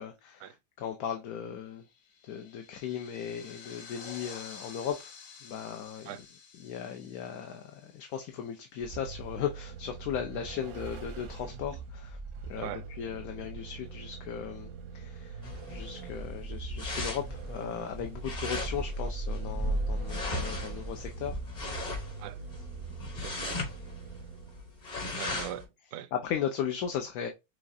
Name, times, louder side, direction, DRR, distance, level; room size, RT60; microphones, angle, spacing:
voice 1, 0.0-1.8 2.2-5.1 5.4-6.1 6.6-12.2 12.4-15.4 15.7-21.8 25.3-25.5 26.1-27.3, left 8 dB, 70° left, 1.1 m, -37 dB
sound 1, 1.8-8.7, left 5 dB, 55° left, 0.6 m, -50 dB
Vehicle, 8.8-24.7, right 5 dB, 85° right, 1.4 m, -43 dB
sound 2, 15.4-25.6, left 1 dB, 35° left, 1.0 m, -36 dB
voice 2, 23.2-23.6 25.2-26.1, right 11 dB, 70° right, 0.9 m, -41 dB
6.2 x 2.4 x 2.6 m
omnidirectional pair, 1.7 m